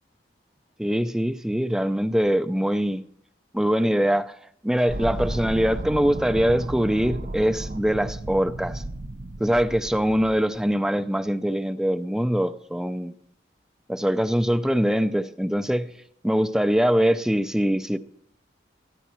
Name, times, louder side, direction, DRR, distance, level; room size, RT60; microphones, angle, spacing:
voice 1, 0.8-3.0 3.5-4.4 4.6-8.8 9.4-13.1 13.9-15.9 16.2-18.0, equal, 5° right, 10 dB, 0.4 m, -23 dB
sound 1, 4.9-10.7, right 1 dB, 45° right, 0.6 m, -34 dB
14.0 x 10.5 x 4.4 m, 0.69 s
head